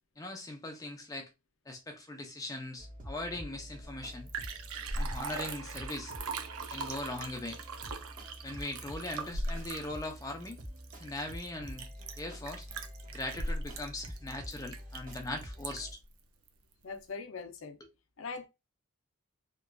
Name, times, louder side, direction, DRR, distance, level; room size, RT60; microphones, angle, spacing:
voice 1, 0.2-1.3 1.7-4.3 5.0-6.1 6.7-7.6 8.4-10.6 11.0-11.9 12.2-12.7 13.1-16.0, left 2 dB, 15° left, 0.5 m, -40 dB
sound 1, 2.8-15.9, equal, 35° right, 0.8 m, -47 dB
Liquid, 3.8-3.9 4.1-16.0 16.5-16.6, right 2 dB, 80° right, 0.5 m, -40 dB
voice 2, 16.8-17.8 18.2-18.5, left 4 dB, 65° left, 0.5 m, -41 dB
2.9 x 2.5 x 2.2 m
head